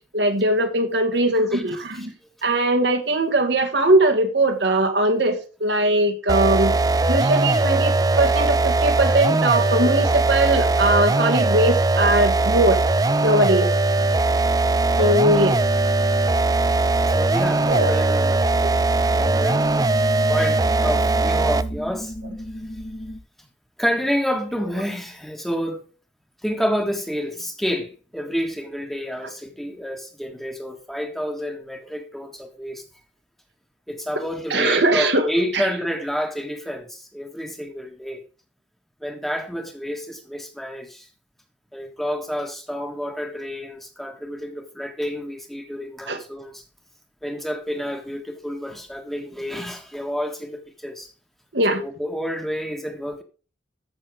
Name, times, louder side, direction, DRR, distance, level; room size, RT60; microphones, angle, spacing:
voice 1, 0.1-2.1 2.4-6.8 7.1-12.8 13.2-13.8 15.0-15.6 17.7-18.1 18.6-18.8 34.5-35.2 35.5-35.7 46.1-46.2 51.5-51.8, right 1 dB, 70° right, 1.8 m, -20 dB
voice 2, 1.4-2.1 15.0-15.3 17.1-18.5 19.1-19.9 20.3-22.1 23.8-25.8 26.4-32.8 33.9-38.2 39.0-41.1 41.7-46.6 47.2-51.1 51.7-53.2, equal, ahead, 1.5 m, -29 dB
sound 1, 6.3-21.8, right 3 dB, 20° right, 0.4 m, -20 dB
sound 2, 14.0-23.2, equal, 30° left, 1.4 m, -36 dB
14.0 x 6.3 x 3.6 m
head